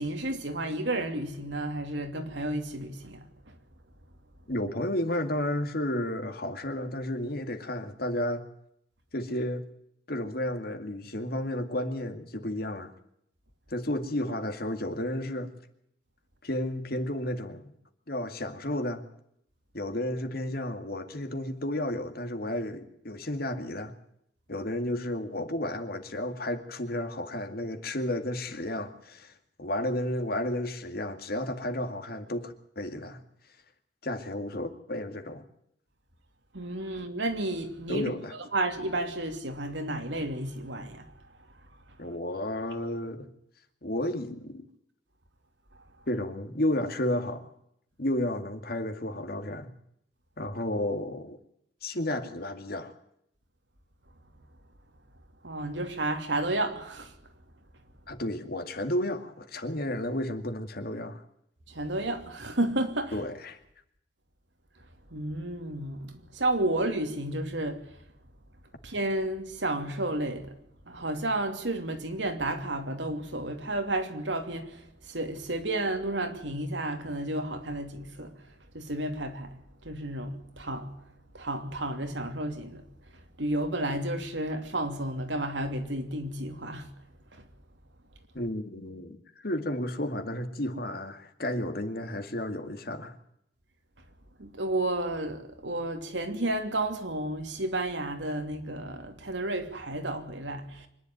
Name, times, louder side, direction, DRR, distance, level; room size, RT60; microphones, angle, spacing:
voice 1, 0.0-3.3 36.5-38.1 38.5-41.1 55.4-57.1 61.7-63.2 65.1-67.8 68.8-70.6 70.9-78.3 78.7-79.6 79.8-80.9 81.3-82.8 83.4-86.9 87.3-87.4 94.4-100.9, right 1 dB, 85° right, 2.9 m, -32 dB
voice 2, 4.5-8.5 9.1-9.6 10.1-12.9 13.7-15.5 16.4-17.7 18.1-19.0 19.7-23.9 24.5-33.2 34.0-35.5 37.9-38.4 42.0-43.3 43.8-44.7 46.1-47.5 48.0-49.7 50.4-51.4 51.8-52.9 58.1-61.2 63.1-63.6 88.3-93.1, left 1 dB, 55° left, 2.2 m, -32 dB
25.0 x 11.0 x 9.2 m
head